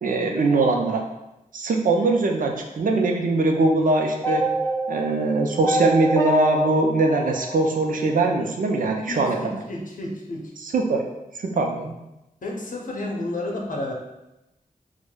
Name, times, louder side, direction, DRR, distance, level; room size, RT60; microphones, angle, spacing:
voice 1, 0.0-1.0 1.5-4.5 4.9-9.4 10.6-11.0 11.4-11.9, right 3 dB, 70° right, 2 dB, 0.5 m, -22 dB
sound 1, 4.2-8.4, right 1 dB, 20° left, 0.6 m, -26 dB
voice 2, 9.1-10.5 12.4-13.9, left 1 dB, 65° left, 0 dB, 0.7 m, -31 dB
4.7 x 2.1 x 2.2 m, 0.94 s
wide cardioid pair, 75°, 15 cm